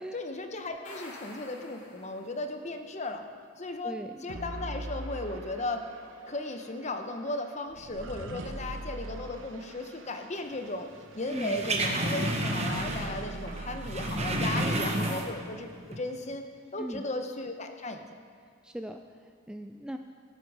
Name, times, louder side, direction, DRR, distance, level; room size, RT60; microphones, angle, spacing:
voice 1, 0.1-3.2 3.6-5.8 6.3-10.9 11.1-16.4 16.7-18.2, left 2 dB, 35° left, 6 dB, 0.9 m, -36 dB
sound 1, 0.7-2.6, left 1 dB, 70° left, 2.7 m, -48 dB
voice 2, 3.8-4.2 11.3-11.6 14.5-15.2 16.8-17.1 18.6-20.0, equal, 5° right, 5 dB, 0.3 m, -39 dB
sound 2, 4.3-15.6, right 2 dB, 70° right, 0.9 m, -43 dB
sound 3, 11.3-13.2 13.5-15.5 15.8-16.0, right 1 dB, 30° right, 1.2 m, -30 dB
17.5 x 8.4 x 4.9 m, 2.1 s
head